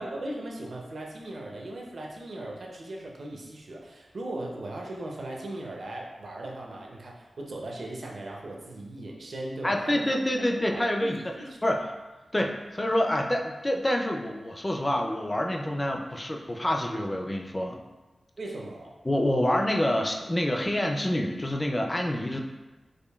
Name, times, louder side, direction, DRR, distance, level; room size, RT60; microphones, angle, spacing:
voice 1, 0.0-10.2 10.7-11.8 18.4-19.0, right 1 dB, 65° right, -1 dB, 0.6 m, -38 dB
voice 2, 9.6-11.3 11.6-11.9 12.3-17.8 19.0-22.4, left 1 dB, 20° left, 2 dB, 0.3 m, -27 dB
4.9 x 2.5 x 2.3 m, 1.2 s
wide cardioid pair, 115°, 0 cm